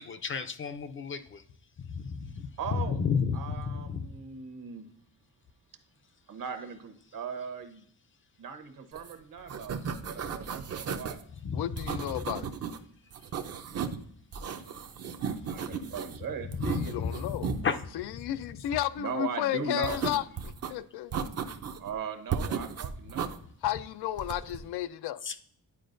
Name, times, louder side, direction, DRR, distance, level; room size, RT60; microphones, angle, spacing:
voice 1, 0.0-1.4 1.8-4.1 11.4-11.8 16.6-17.8 25.2-25.4, left 6 dB, 35° left, 0.4 m, -32 dB
voice 2, 2.6-3.0 3.3-4.9 6.3-7.8 8.4-9.8 10.0-11.2 15.4-16.5 19.0-20.0 21.8-23.3, right 6 dB, 60° right, 1.0 m, -38 dB
sound 1, 9.0-9.1 9.4-11.2 11.8-12.8 13.1-14.0 14.3-16.2 16.5-17.6 19.8-20.7 21.1-21.9 22.3-23.4 24.2-24.6, right 6 dB, 40° right, 0.5 m, -35 dB
voice 3, 11.5-12.5 16.6-17.5 17.9-20.2 20.7-21.1 23.6-25.2, left 13 dB, 85° left, 0.5 m, -32 dB
9.9 x 4.5 x 2.5 m
cardioid pair, 140°, 38 cm